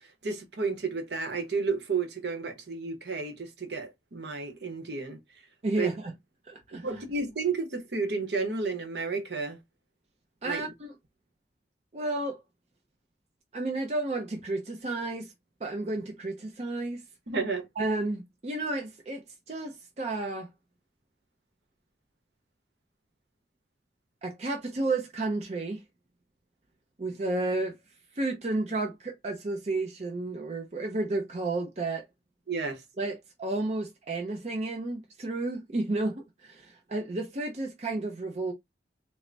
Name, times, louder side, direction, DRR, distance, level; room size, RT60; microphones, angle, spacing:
voice 1, 0.2-5.2 5.8-5.9 6.8-9.6 10.4-10.6 17.3-17.7 32.5-32.8, right 4 dB, 65° right, 0.9 m, -32 dB
voice 2, 5.6-6.1 6.5-6.9 10.4-10.9 11.9-12.4 13.5-15.3 15.6-17.0 17.8-20.5 24.2-25.8 27.0-27.7 28.1-32.0 33.0-38.5, right 2 dB, 40° right, 0.5 m, -32 dB
3.8 x 2.0 x 3.2 m
head